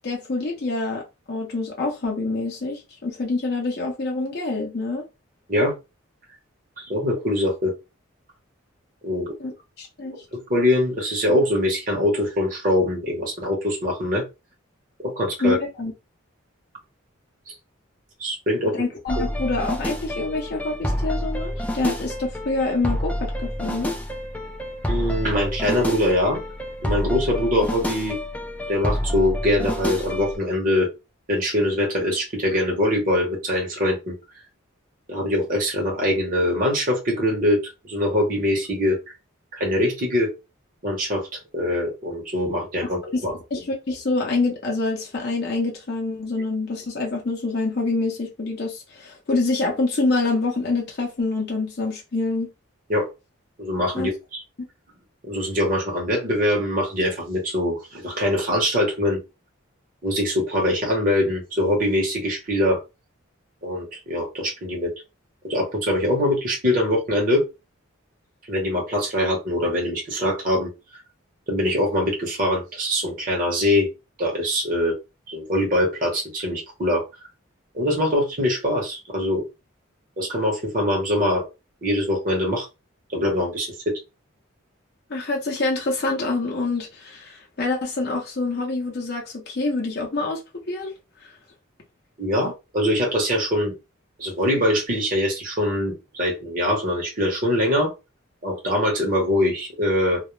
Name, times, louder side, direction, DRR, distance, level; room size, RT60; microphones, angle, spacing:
voice 1, 0.0-1.0 1.3-5.0 9.4-10.2 15.4-15.9 18.7-23.9 43.1-52.5 53.9-54.1 85.1-90.4 90.7-90.9, left 3 dB, 50° left, 0.6 m, -26 dB
voice 2, 6.8-7.7 9.0-9.3 10.3-14.2 15.0-15.6 17.5-17.6 18.2-18.7 24.9-26.4 26.8-28.2 28.7-30.9 31.3-34.1 35.1-39.0 39.5-40.3 40.8-43.3 52.9-53.1 53.6-54.4 55.3-59.2 60.0-62.8 63.6-64.9 65.4-67.4 68.5-70.7 71.5-73.9 74.2-74.9 75.3-77.0 77.7-79.4 80.2-81.4 81.8-82.7 83.1-83.9 92.2-93.7 94.2-97.9 98.4-100.2, left 1 dB, 40° right, 0.8 m, -23 dB
sound 1, 19.1-30.4, left 1 dB, 5° left, 0.3 m, -28 dB
2.3 x 2.0 x 3.0 m
head